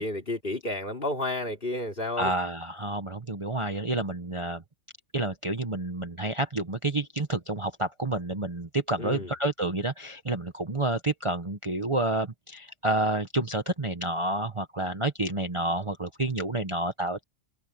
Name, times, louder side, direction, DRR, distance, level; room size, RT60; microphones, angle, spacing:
voice 1, 0.0-2.3 9.0-9.3, left 2 dB, 40° left, 3.5 m, -31 dB
voice 2, 2.2-4.6 5.1-17.2, right 2 dB, 25° right, 1.1 m, -29 dB
omnidirectional pair, 1.5 m